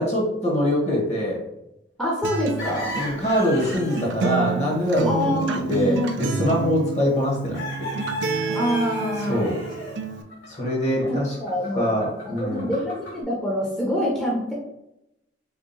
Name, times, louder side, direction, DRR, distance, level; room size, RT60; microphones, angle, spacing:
voice 1, 0.0-1.4 2.9-7.9 9.3-9.6 10.5-11.4 11.7-12.7, equal, 35° left, -2 dB, 1.1 m, -24 dB
voice 2, 2.0-2.9 5.0-6.3 8.5-9.4 11.0-12.0 12.3-14.5, equal, 5° left, -5 dB, 0.7 m, -26 dB
Acoustic guitar, 2.2-10.2, right 4 dB, 75° right, 0.4 m, -29 dB
sound 1, 2.5-4.1 4.4-4.5 4.9-5.1 6.4-6.5 7.5-13.2, left 1 dB, 75° left, 1.3 m, -35 dB
3.6 x 2.3 x 3.9 m, 0.84 s
head